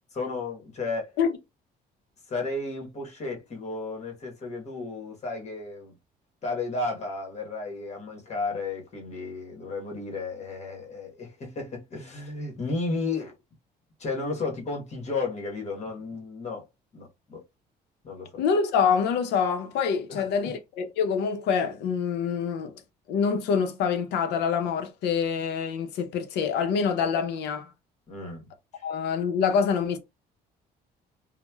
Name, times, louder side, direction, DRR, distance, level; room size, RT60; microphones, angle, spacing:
voice 1, 0.1-1.1 2.3-5.9 6.4-13.4 14.0-16.6 16.9-17.4 18.0-18.3 20.1-20.3 28.1-28.5 28.7-28.8, left 3 dB, 40° left, 1.1 m, -33 dB
voice 2, 18.4-22.7 23.1-27.7 28.8-30.0, left 6 dB, 85° left, 0.6 m, -26 dB
3.0 x 2.1 x 2.2 m
cardioid pair, 110°, 17 cm